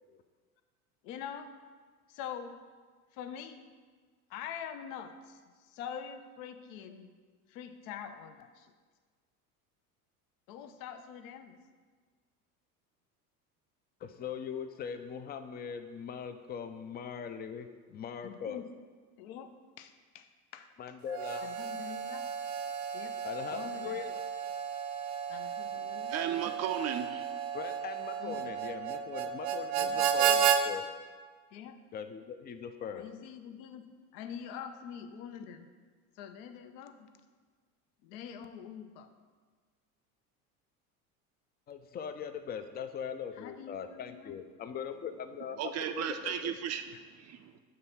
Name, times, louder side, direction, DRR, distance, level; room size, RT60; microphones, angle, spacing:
voice 1, 1.0-1.5 2.1-2.6 3.1-3.6 4.3-7.1 7.5-8.7 10.5-11.6 18.2-18.7 19.2-20.7 21.4-22.3 22.9-23.2 23.5-24.0 25.3-26.1 28.2-28.4 29.8-30.1 31.5-31.8 32.9-33.9 34.1-35.7 36.2-37.1 38.0-39.1 43.4-44.4, left 8 dB, 65° left, 9 dB, 0.7 m, -45 dB
voice 2, 14.0-18.6 20.8-21.5 23.2-24.2 27.5-30.8 31.9-33.0 41.7-46.5, left 7 dB, 25° left, 9 dB, 0.4 m, -41 dB
Harmonica, 21.1-30.6, right 8 dB, 75° right, 0.7 m, -33 dB
voice 3, 25.7-27.3 45.6-47.6, right 9 dB, 35° right, 7 dB, 0.5 m, -35 dB
6.5 x 3.4 x 5.6 m, 1.5 s
hypercardioid pair, 80°, 44 cm